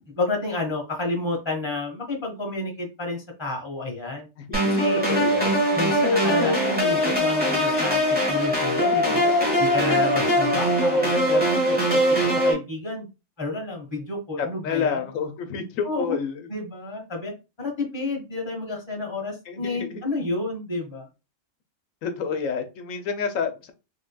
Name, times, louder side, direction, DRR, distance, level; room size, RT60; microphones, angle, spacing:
voice 1, 0.1-4.3 4.6-5.0 5.7-8.0 8.3-9.3 9.6-13.1 13.4-15.0 15.8-16.2 16.5-17.3 17.6-21.1, left 2 dB, 20° left, 0 dB, 1.2 m, -30 dB
voice 2, 4.4-4.8 5.2-5.5 9.0-9.6 14.4-16.5 19.5-20.0 22.0-23.7, left 6 dB, 85° left, 6 dB, 1.0 m, -30 dB
sound 1, 4.5-12.5, equal, 5° right, 1.3 m, -21 dB
3.7 x 3.3 x 2.2 m, 0.28 s
omnidirectional pair, 1.3 m